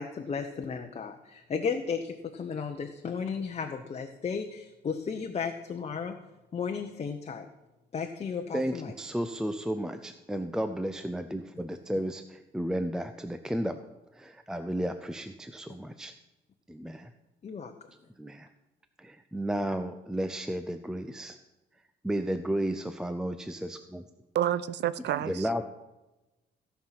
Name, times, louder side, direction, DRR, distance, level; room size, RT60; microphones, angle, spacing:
voice 1, 0.0-6.1 6.5-7.5 7.9-8.9 17.4-17.7, left 6 dB, 35° left, 4 dB, 0.9 m, -34 dB
voice 2, 8.5-13.8 14.2-16.1 16.7-17.1 18.2-18.5 19.0-21.4 22.0-24.0 25.2-25.6, right 1 dB, 5° right, 9 dB, 0.6 m, -33 dB
voice 3, 24.3-25.5, right 11 dB, 70° right, 17 dB, 0.6 m, -29 dB
16.0 x 5.7 x 5.8 m, 1.0 s
cardioid pair, 100°, 18 cm